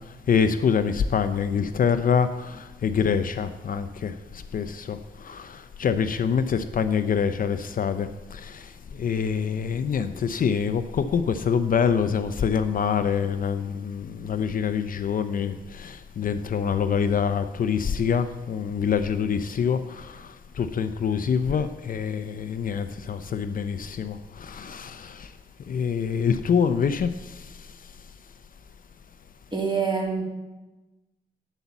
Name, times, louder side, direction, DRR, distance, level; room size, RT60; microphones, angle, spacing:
voice 1, 0.1-25.3 25.7-27.7, left 6 dB, 50° left, 0.6 m, -26 dB
voice 2, 29.5-30.2, right 5 dB, 25° right, 2.7 m, -25 dB
9.1 x 8.1 x 7.1 m
wide cardioid pair, 130°, 18 cm